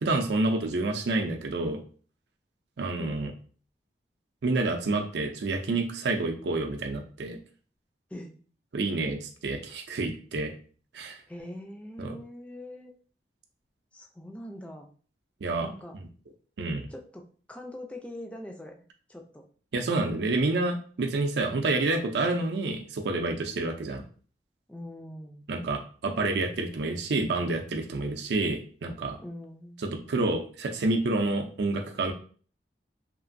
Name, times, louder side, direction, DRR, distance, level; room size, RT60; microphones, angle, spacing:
voice 1, 0.0-1.8 2.8-3.3 4.4-7.4 8.7-10.5 10.9-11.2 12.0-12.2 15.4-15.7 16.6-16.9 19.7-24.0 25.5-29.2 29.8-32.1, right 2 dB, 75° right, 4 dB, 0.4 m, -28 dB
voice 2, 11.3-12.9 13.9-14.9 15.6-15.9 16.9-18.7 19.1-19.4 24.7-25.4 29.2-29.8, left 1 dB, 5° left, 2 dB, 0.3 m, -42 dB
3.0 x 2.5 x 2.5 m, 0.42 s
head